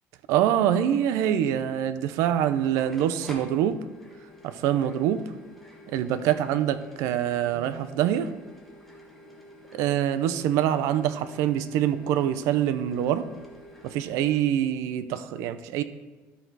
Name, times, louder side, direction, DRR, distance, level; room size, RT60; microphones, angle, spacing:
voice 1, 0.3-3.8 4.4-5.2 5.9-8.3 9.7-13.3 13.8-15.8, right 10 dB, 75° right, 12 dB, 0.4 m, -25 dB
sound 1, 2.3-14.4, equal, 5° left, 1.0 m, -49 dB
12.5 x 4.6 x 4.0 m, 1.2 s
cardioid pair, 170°, 5 cm